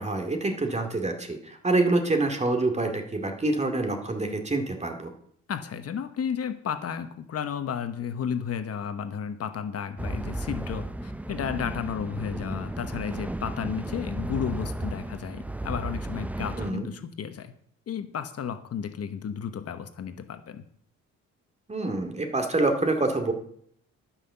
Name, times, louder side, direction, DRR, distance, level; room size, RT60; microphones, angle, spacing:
voice 1, 0.0-5.1 16.6-16.9 21.7-23.3, right 2 dB, 20° right, 5 dB, 2.3 m, -26 dB
voice 2, 5.5-17.5 17.9-20.6, left 7 dB, 55° left, 9 dB, 1.0 m, -33 dB
sound 1, 10.0-16.7, right 1 dB, 5° right, 0.4 m, -34 dB
12.5 x 5.8 x 6.8 m, 0.66 s
cardioid pair, 90°, 30 cm